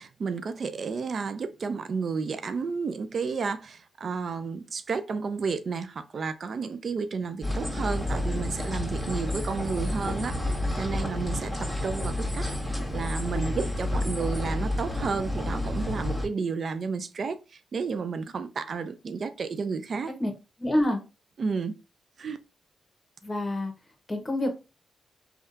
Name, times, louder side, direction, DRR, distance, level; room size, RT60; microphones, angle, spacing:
voice 1, 0.0-10.3 10.8-11.5 11.8-12.4 12.9-17.4 17.7-20.1 21.4-21.7 22.2-22.4, right 5 dB, 60° right, 0.3 m, -31 dB
sound 1, 7.4-16.3, left 1 dB, 15° right, 1.7 m, -30 dB
voice 2, 20.6-21.0 23.2-23.7 24.1-24.6, left 1 dB, 30° left, 1.1 m, -26 dB
3.5 x 2.3 x 2.6 m
cardioid pair, 55°, 0 cm